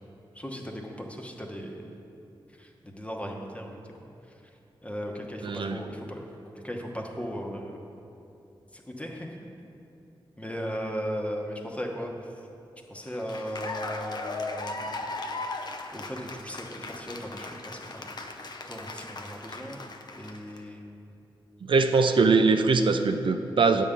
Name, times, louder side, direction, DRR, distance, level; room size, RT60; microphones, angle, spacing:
voice 1, 0.3-1.8 2.6-3.8 4.8-6.3 6.6-7.8 8.7-9.4 10.4-12.1 12.9-14.9 15.9-18.1 18.6-19.8 20.1-21.1, equal, 15° left, 1 dB, 1.0 m, -37 dB
voice 2, 5.4-5.8 21.7-23.8, right 4 dB, 65° right, 7 dB, 0.4 m, -22 dB
Cheering / Applause, 13.0-20.6, left 3 dB, 50° left, 0.6 m, -37 dB
9.1 x 3.7 x 6.9 m, 2.7 s
cardioid pair, 65°, 9 cm